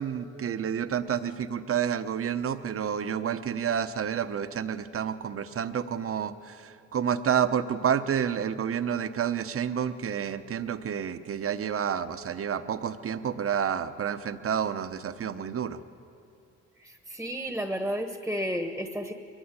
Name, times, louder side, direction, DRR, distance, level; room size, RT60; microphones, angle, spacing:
voice 1, 0.0-15.8, right 8 dB, 50° right, 11 dB, 1.0 m, -29 dB
voice 2, 16.8-19.1, equal, 5° right, 7 dB, 1.3 m, -32 dB
22.5 x 15.5 x 9.8 m, 2.8 s
cardioid pair, 90°, 30 cm